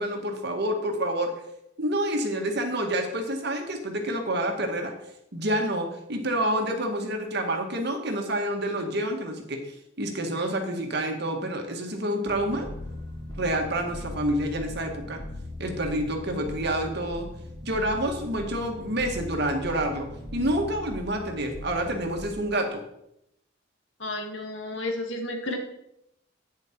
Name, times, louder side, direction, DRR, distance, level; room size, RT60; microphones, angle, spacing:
voice 1, 0.0-1.3 1.8-4.9 5.3-9.7 10.0-12.7 13.4-15.2 15.6-17.3 17.6-22.8, right 1 dB, 60° right, 3 dB, 1.9 m, -28 dB
sound 1, 12.3-22.3, left 1 dB, 20° left, 2.5 m, -39 dB
voice 2, 24.0-25.6, left 1 dB, 70° left, 4 dB, 1.9 m, -32 dB
10.5 x 9.0 x 4.6 m, 0.79 s
head